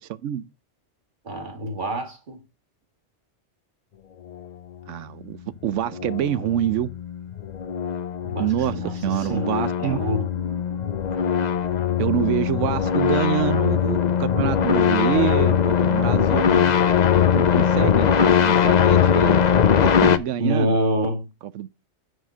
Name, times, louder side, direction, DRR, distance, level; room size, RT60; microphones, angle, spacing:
voice 1, 0.1-0.5 4.9-6.9 8.4-10.0 12.0-16.7 17.5-19.5 19.8-20.8 21.5-21.7, right 11 dB, 85° right, 1.0 m, -26 dB
voice 2, 1.2-2.4 8.2-9.5 9.8-10.3 17.4-17.7 20.4-21.3, right 1 dB, 40° right, 2.0 m, -26 dB
sound 1, 5.6-20.2, left 8 dB, 50° left, 0.6 m, -21 dB
9.2 x 4.0 x 6.1 m
omnidirectional pair, 1.2 m